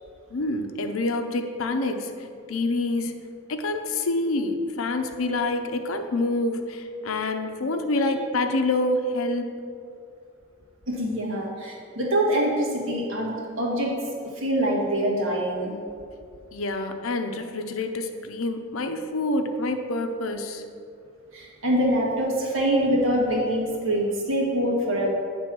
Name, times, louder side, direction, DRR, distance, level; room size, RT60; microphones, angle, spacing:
voice 1, 0.3-3.2 3.5-9.5 16.5-20.6, left 2 dB, 90° left, 6 dB, 0.6 m, -27 dB
voice 2, 10.9-13.9 14.4-15.8 21.3-25.2, right 1 dB, 70° right, -2 dB, 1.5 m, -24 dB
8.7 x 3.4 x 6.0 m, 2.4 s
head